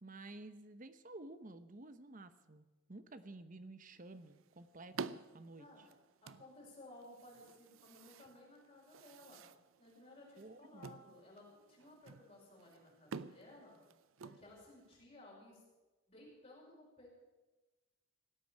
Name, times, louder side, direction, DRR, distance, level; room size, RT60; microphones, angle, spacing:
voice 1, 0.0-5.0 5.3-5.7 10.4-11.0, right 2 dB, 40° right, 11 dB, 0.9 m, -52 dB
sound 1, 3.9-15.0, right 5 dB, 85° right, 0.6 m, -51 dB
voice 2, 5.6-5.9 6.2-9.4 9.8-13.8 14.2-15.6 16.1-17.1, left 1 dB, 35° left, -7 dB, 5.8 m, -58 dB
17.5 x 8.4 x 9.1 m, 1.2 s
head